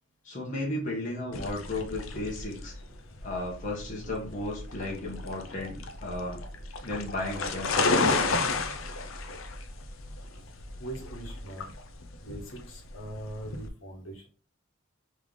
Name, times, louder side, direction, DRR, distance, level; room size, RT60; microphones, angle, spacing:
voice 1, 0.2-2.7 3.2-6.4 6.8-8.4, left 2 dB, 40° left, -3 dB, 1.2 m, -34 dB
sound 1, 1.3-13.7, left 3 dB, 85° left, 0.6 m, -32 dB
sound 2, 1.6-11.5, equal, 25° right, 1.6 m, -45 dB
voice 2, 10.8-11.7 12.2-14.3, right 1 dB, 70° left, -1 dB, 1.5 m, -41 dB
3.6 x 3.3 x 3.7 m, 0.38 s
head